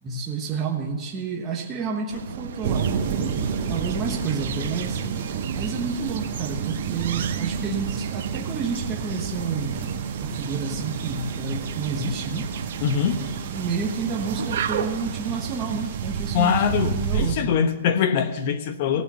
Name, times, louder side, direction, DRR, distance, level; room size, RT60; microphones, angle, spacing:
voice 1, 0.0-2.9 3.2-5.0 5.5-9.8 10.2-12.5 13.5-17.5, right 5 dB, 15° right, -1 dB, 1.2 m, -30 dB
sound 1, 2.1-15.8, right 8 dB, 50° right, 0.9 m, -35 dB
sound 2, 2.6-17.3, right 6 dB, 30° right, 1.8 m, -30 dB
voice 2, 12.8-13.2 16.3-19.0, left 7 dB, 35° left, 10 dB, 0.9 m, -23 dB
16.5 x 9.0 x 5.5 m, 1.3 s
hypercardioid pair, 175°, 0 cm